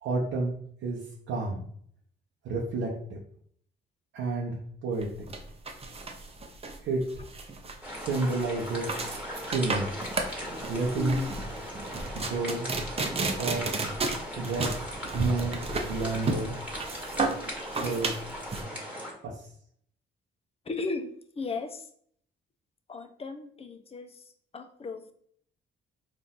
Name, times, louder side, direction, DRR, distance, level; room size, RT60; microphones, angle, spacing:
voice 1, 0.0-0.5 0.8-1.0 1.3-1.7 2.4-3.2 4.1-5.1 6.8-7.1 8.0-8.9 9.4-10.0 10.7-11.2 12.1-12.7 13.4-13.7 14.4-14.7 15.1-15.6 15.9-16.5 17.7-18.1 19.2-19.4, right 3 dB, 80° right, -3 dB, 0.8 m, -30 dB
sound 1, 5.0-18.6, right 3 dB, 30° right, 0.7 m, -33 dB
sound 2, 7.8-19.1, equal, 5° right, 1.7 m, -39 dB
voice 2, 11.0-11.3 20.6-21.9 22.9-25.1, left 3 dB, 30° left, 7 dB, 0.6 m, -36 dB
4.4 x 2.6 x 3.7 m, 0.62 s
cardioid pair, 90°, 20 cm